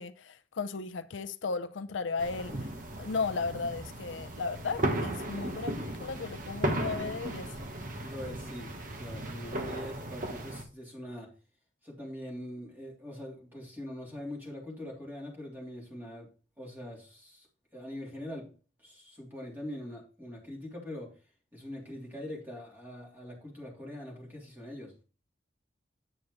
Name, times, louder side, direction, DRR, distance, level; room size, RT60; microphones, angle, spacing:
voice 1, 0.0-2.5 3.0-7.5, left 4 dB, 85° left, 0.6 m, -35 dB
sound 1, 2.2-10.6, right 1 dB, 45° right, 1.2 m, -36 dB
voice 2, 8.0-11.3 11.8-16.3 16.6-17.5 17.7-18.5 18.8-21.1 21.5-24.9, left 1 dB, 10° right, 3.2 m, -43 dB
9.1 x 7.2 x 3.3 m
head